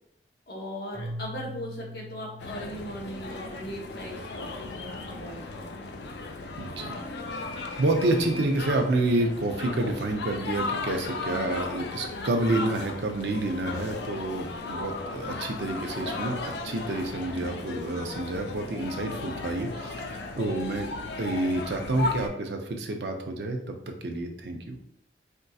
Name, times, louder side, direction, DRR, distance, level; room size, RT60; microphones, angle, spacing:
voice 1, 0.5-5.7, equal, 60° left, -2 dB, 0.9 m, -39 dB
Keyboard (musical), 0.9-4.1, equal, 40° right, 0.8 m, -42 dB
sound 1, 2.4-22.3, left 3 dB, 80° left, 0.5 m, -36 dB
voice 2, 6.6-7.0 7.5-20.9 21.2-23.8 24.0-24.8, right 2 dB, 80° right, 4 dB, 0.6 m, -29 dB
4.4 x 2.6 x 2.3 m, 0.70 s
head